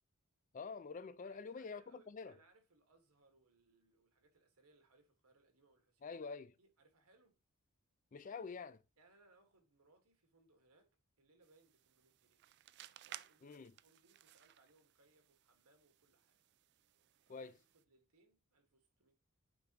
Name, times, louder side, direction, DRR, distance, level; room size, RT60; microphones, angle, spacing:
voice 1, 0.5-2.3 6.0-6.5 8.1-8.8 13.4-13.7 17.3-17.6, left 5 dB, 35° left, 0.3 m, -47 dB
voice 2, 1.2-6.2 6.6-7.4 9.0-12.4 13.0-16.4 17.3-19.1, right 2 dB, 90° right, 1.5 m, -71 dB
sound 1, 11.4-17.8, right 13 dB, 50° right, 0.3 m, -59 dB
9.0 x 3.7 x 2.9 m
head